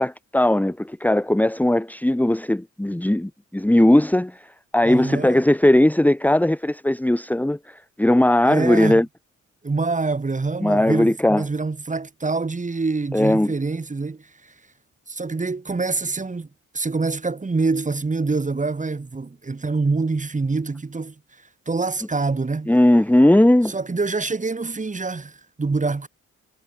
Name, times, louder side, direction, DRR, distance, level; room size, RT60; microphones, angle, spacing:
voice 1, 0.0-9.1 10.6-11.4 13.1-13.5 22.7-23.7, left 1 dB, 5° left, 2.3 m, -18 dB
voice 2, 4.8-5.4 8.4-9.0 9.6-14.5 15.1-16.5 16.7-21.1 21.7-22.8 23.6-26.1, right 3 dB, 25° right, 7.8 m, -25 dB
cardioid pair, 90°, 30 cm